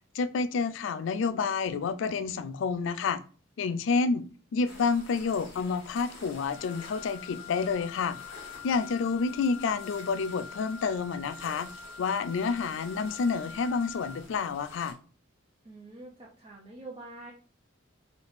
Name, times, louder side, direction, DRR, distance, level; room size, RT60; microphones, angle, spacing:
voice 1, 0.1-3.2 3.6-4.2 4.5-8.2 8.6-11.7 12.0-15.0, left 5 dB, 70° left, 0.3 m, -29 dB
sound 1, 4.6-14.9, left 2 dB, 85° left, 1.5 m, -50 dB
Wind instrument woodwind instrument, 6.5-14.3, left 7 dB, 35° left, 0.7 m, -45 dB
voice 2, 15.6-17.3, right 2 dB, 30° right, 0.6 m, -45 dB
3.3 x 2.9 x 4.0 m
head